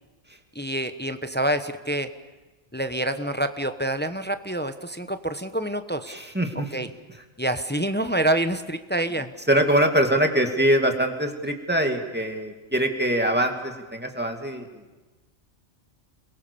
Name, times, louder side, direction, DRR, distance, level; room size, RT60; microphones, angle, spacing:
voice 1, 0.5-2.1 2.7-6.2 6.7-6.9 7.4-9.3, right 1 dB, 10° left, 9 dB, 0.9 m, -27 dB
voice 2, 6.1-6.8 9.5-15.0, right 1 dB, 10° right, 4 dB, 2.5 m, -23 dB
30.0 x 22.5 x 7.0 m, 1.2 s
omnidirectional pair, 1.2 m